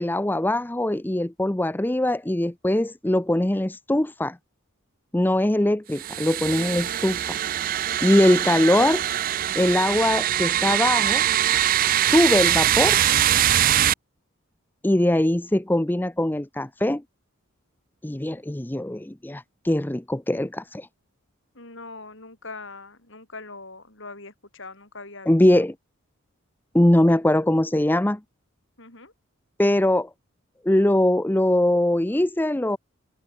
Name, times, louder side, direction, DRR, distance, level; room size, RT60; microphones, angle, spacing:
voice 1, 0.0-4.4 5.1-7.4 8.0-9.0 9.6-11.2 12.0-13.0 14.8-17.0 18.0-20.9 25.3-25.7 26.7-28.2 29.6-30.1 30.6-32.8, left 1 dB, 10° left, 0.5 m, -21 dB
sound 1, 5.9-13.9, right 11 dB, 40° right, 0.4 m, -22 dB
voice 2, 21.5-25.6 28.8-29.1, left 3 dB, 60° left, 6.4 m, -42 dB
head